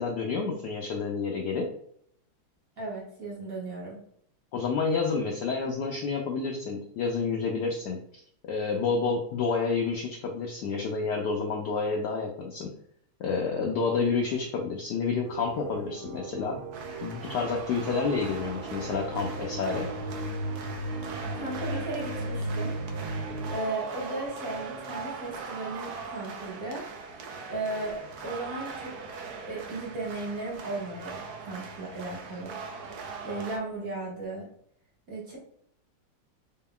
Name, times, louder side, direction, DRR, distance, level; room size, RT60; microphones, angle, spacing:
voice 1, 0.0-1.7 4.5-8.0 8.4-12.8 13.2-16.6 17.0-19.9, left 4 dB, 85° left, 1 dB, 0.9 m, -29 dB
voice 2, 2.8-4.0 21.1-22.7 23.5-26.8 27.1-28.9 29.5-32.6 33.2-34.5 35.1-35.4, right 2 dB, 45° right, -5 dB, 1.7 m, -36 dB
sound 1, 15.2-23.5, right 1 dB, 90° right, 1.7 m, -36 dB
sound 2, 16.7-33.6, right 4 dB, 65° right, 0.9 m, -40 dB
4.4 x 3.7 x 2.2 m, 0.67 s
omnidirectional pair, 2.4 m